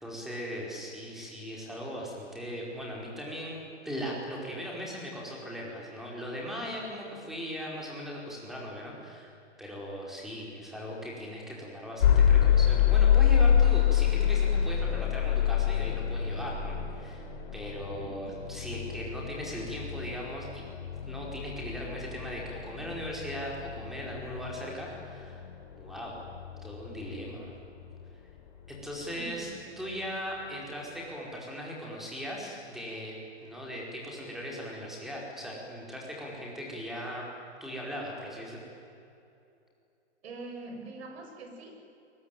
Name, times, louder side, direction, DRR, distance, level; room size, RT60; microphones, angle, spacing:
voice 1, 0.0-3.6 3.8-9.3 9.6-17.2 17.5-20.6 21.0-25.4 25.8-26.2 26.6-27.5 28.7-33.1 33.4-37.3 37.6-38.6, equal, ahead, -3 dB, 4.9 m, -38 dB
sound 1, 12.0-27.9, left 9 dB, 50° left, 3.7 m, -27 dB
voice 2, 18.0-18.5 29.2-29.7 40.2-41.8, right 2 dB, 60° right, 4 dB, 6.8 m, -44 dB
28.0 x 22.5 x 9.2 m, 2.6 s
hypercardioid pair, 160°, 35 cm